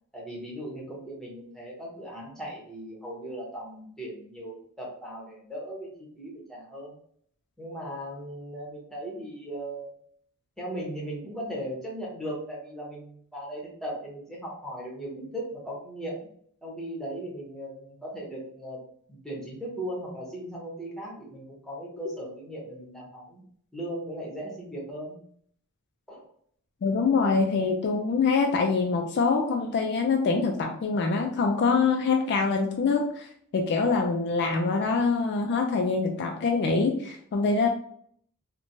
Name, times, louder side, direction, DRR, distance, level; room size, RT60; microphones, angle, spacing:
voice 1, 0.1-5.9 6.2-6.9 7.6-9.9 10.6-16.2 16.6-18.8 19.1-23.4 23.7-25.2 26.1-26.3, right 1 dB, ahead, -4 dB, 0.8 m, -38 dB
voice 2, 26.8-37.7, left 4 dB, 50° left, 3 dB, 0.3 m, -25 dB
3.0 x 2.1 x 2.6 m, 0.62 s
head